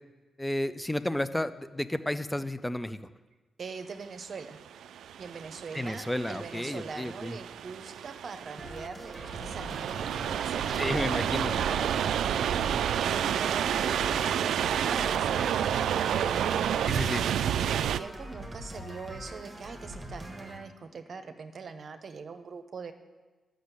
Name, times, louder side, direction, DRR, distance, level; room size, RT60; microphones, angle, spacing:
voice 1, 0.4-3.0 5.7-7.3 10.7-11.6 16.9-17.2, left 1 dB, 5° left, 12 dB, 0.4 m, -32 dB
voice 2, 3.6-4.6 5.2-11.1 11.6-15.8 16.2-17.1 17.6-22.9, right 5 dB, 40° right, 8 dB, 0.8 m, -42 dB
sound 1, 4.4-18.0, right 9 dB, 80° right, 0.3 m, -30 dB
sound 2, 8.6-20.6, right 1 dB, 10° right, 1.4 m, -43 dB
sound 3, 13.1-13.3 14.0-14.3 15.0-15.2 16.9-17.2 18.8-19.3, left 2 dB, 85° left, 0.7 m, -46 dB
12.0 x 6.3 x 8.2 m, 1.2 s
wide cardioid pair, 180°, 0 cm